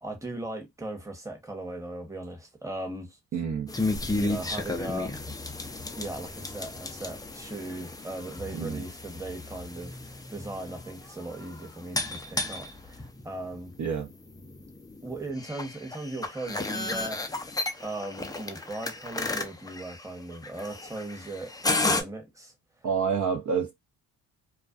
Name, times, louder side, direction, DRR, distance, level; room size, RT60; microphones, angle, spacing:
voice 1, 0.0-3.2 4.1-5.1 6.0-13.7 15.0-21.5 21.8-22.5, right 2 dB, 5° right, 0.9 m, -38 dB
voice 2, 3.3-3.7 8.5-8.8 13.8-14.1 22.8-23.7, right 6 dB, 40° right, 0.6 m, -28 dB
sound 1, 3.7-22.0, left 2 dB, 10° left, 0.4 m, -34 dB
2.3 x 2.2 x 2.4 m
supercardioid pair, 55°, 45 cm